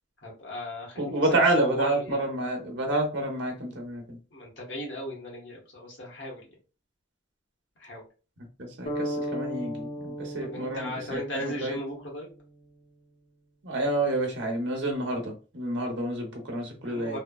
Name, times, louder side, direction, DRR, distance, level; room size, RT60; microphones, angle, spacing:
voice 1, 0.2-2.2 4.3-6.5 7.8-8.0 10.4-12.3 16.8-17.2, left 1 dB, 70° left, -2 dB, 1.2 m, -37 dB
voice 2, 1.0-4.2 8.6-11.8 13.6-17.2, right 2 dB, 65° right, 1 dB, 0.9 m, -29 dB
sound 1, 8.8-12.8, equal, 40° left, 0.7 m, -36 dB
3.2 x 2.1 x 2.3 m, 0.33 s
head